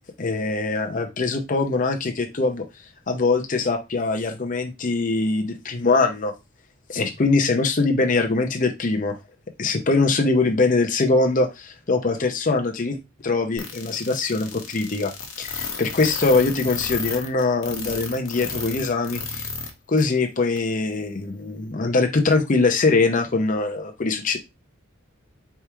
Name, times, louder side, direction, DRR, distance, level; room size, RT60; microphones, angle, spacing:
voice 1, 0.2-2.7 3.1-6.3 6.9-9.2 9.6-13.0 13.2-15.1 15.4-19.5 19.9-24.4, left 3 dB, 40° left, 4 dB, 0.7 m, -22 dB
sound 1, 13.6-19.7 20.0-20.1 20.6-20.7, left 5 dB, 75° left, 1.1 m, -32 dB
4.6 x 3.5 x 3.0 m, 0.23 s
head